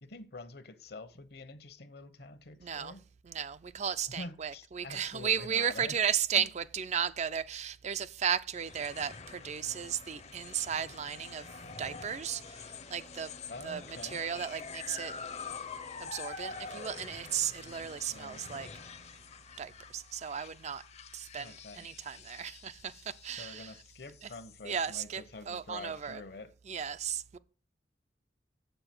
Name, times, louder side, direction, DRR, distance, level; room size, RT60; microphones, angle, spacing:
voice 1, 0.0-3.0 4.2-5.9 6.3-6.5 13.5-14.2 18.1-18.4 21.4-21.9 23.4-26.5, left 2 dB, 60° left, 1.1 m, -46 dB
voice 2, 2.6-2.9 3.2-11.5 11.8-13.3 13.6-15.1 16.0-18.7 19.6-20.8 21.1-23.7 24.2-24.3 24.6-26.2 26.7-27.4, right 8 dB, 40° right, 0.4 m, -35 dB
sound 1, 8.5-25.0, left 5 dB, 40° left, 0.7 m, -47 dB
7.8 x 6.8 x 6.0 m
head